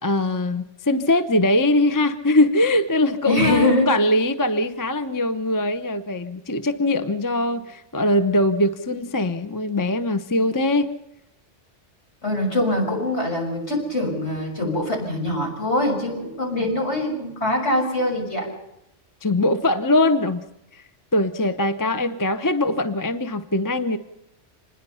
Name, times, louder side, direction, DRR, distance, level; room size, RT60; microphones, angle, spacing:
voice 1, 0.0-10.9 16.5-16.7 19.2-20.4 20.7-20.8 21.1-24.0, left 1 dB, 20° left, 10 dB, 0.8 m, -21 dB
voice 2, 3.2-3.9 12.2-18.5, left 1 dB, 65° left, 1 dB, 6.8 m, -23 dB
26.0 x 21.0 x 5.7 m, 0.87 s
omnidirectional pair, 1.3 m